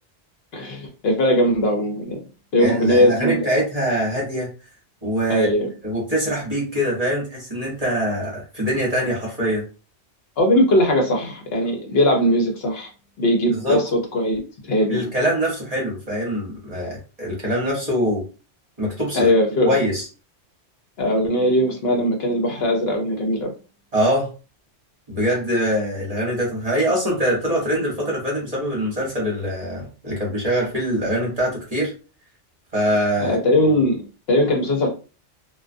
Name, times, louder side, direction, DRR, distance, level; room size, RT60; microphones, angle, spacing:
voice 1, 0.5-2.2 2.5-3.5 5.3-5.7 10.4-12.9 13.2-15.0 19.1-19.7 21.0-23.5 33.2-34.9, left 1 dB, 65° left, 2 dB, 0.9 m, -20 dB
voice 2, 2.6-4.5 5.0-5.5 5.8-9.6 13.5-13.8 14.9-18.3 18.8-19.3 19.6-20.1 23.9-24.3 25.1-31.9 32.7-33.4, equal, 35° right, -3 dB, 0.9 m, -23 dB
2.3 x 2.2 x 2.5 m, 0.34 s
omnidirectional pair, 1.2 m